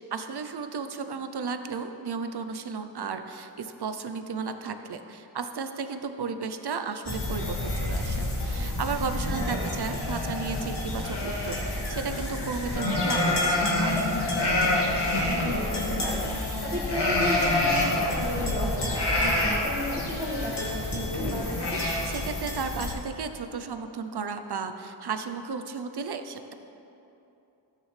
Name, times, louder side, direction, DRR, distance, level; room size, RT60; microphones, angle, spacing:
voice 1, 0.0-14.0 21.8-26.5, right 5 dB, 55° right, 8 dB, 0.7 m, -34 dB
sound 1, 7.1-22.9, left 1 dB, 55° left, 2.2 m, -27 dB
voice 2, 9.3-9.7 15.2-21.8, left 1 dB, 30° right, -9 dB, 2.2 m, -34 dB
13.5 x 9.3 x 3.3 m, 2.9 s
wide cardioid pair, 80°, 47 cm